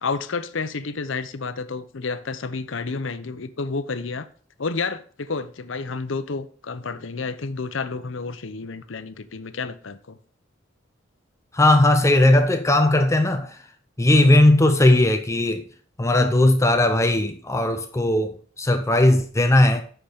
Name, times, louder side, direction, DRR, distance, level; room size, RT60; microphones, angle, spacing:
voice 1, 0.0-4.3 4.6-10.2, left 4 dB, 75° left, 0.7 m, -30 dB
voice 2, 11.5-13.6 14.0-15.6 16.0-19.8, left 1 dB, 15° left, 0.6 m, -18 dB
7.9 x 6.0 x 5.0 m
head